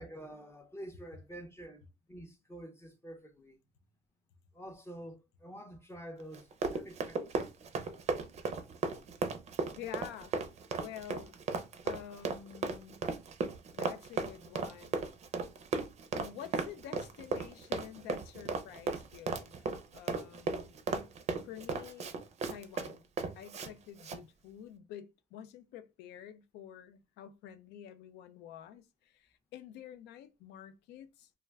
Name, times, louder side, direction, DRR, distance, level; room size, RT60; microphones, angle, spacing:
voice 1, 0.0-3.6 4.5-7.5, right 1 dB, 15° left, 0.5 m, -48 dB
Run, 6.3-23.7 24.0-24.2, right 4 dB, 40° right, 0.5 m, -36 dB
voice 2, 9.8-10.3 10.8-11.3 11.8-13.0 13.7-15.0 16.1-20.8 21.4-22.1 22.5-23.0 23.3-31.3, left 10 dB, 85° left, 0.5 m, -49 dB
2.2 x 2.2 x 3.3 m
cardioid pair, 110°, 17 cm